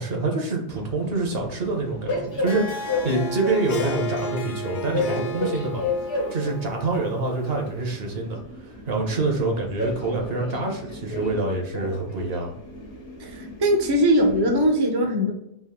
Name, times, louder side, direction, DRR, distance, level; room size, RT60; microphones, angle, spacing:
voice 1, 0.0-12.5, right 3 dB, 70° right, 1 dB, 1.1 m, -26 dB
Train, 0.7-14.6, left 2 dB, 75° left, 1.2 m, -33 dB
Harp, 2.3-7.7, equal, 55° left, 0.7 m, -34 dB
voice 2, 13.2-15.3, equal, 30° right, 2 dB, 0.5 m, -20 dB
3.5 x 2.5 x 3.6 m, 0.82 s
omnidirectional pair, 1.1 m